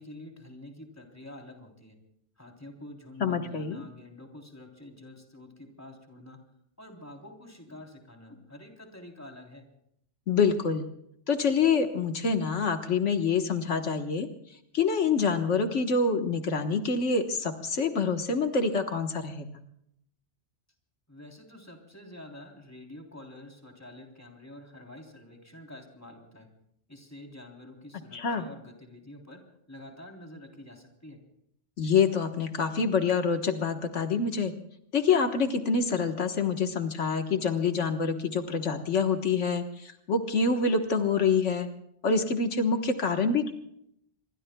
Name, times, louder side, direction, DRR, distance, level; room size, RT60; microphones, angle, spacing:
voice 1, 0.0-2.0 2.4-6.4 6.8-9.7 21.1-26.5 26.9-31.2, left 1 dB, 15° left, 2 dB, 3.4 m, -47 dB
voice 2, 3.2-3.8 10.3-10.9 11.3-19.5 28.1-28.5 31.8-34.5 34.9-41.7 42.0-43.5, left 5 dB, 80° left, 6 dB, 1.6 m, -26 dB
26.5 x 23.5 x 2.3 m, 0.74 s
omnidirectional pair, 1.2 m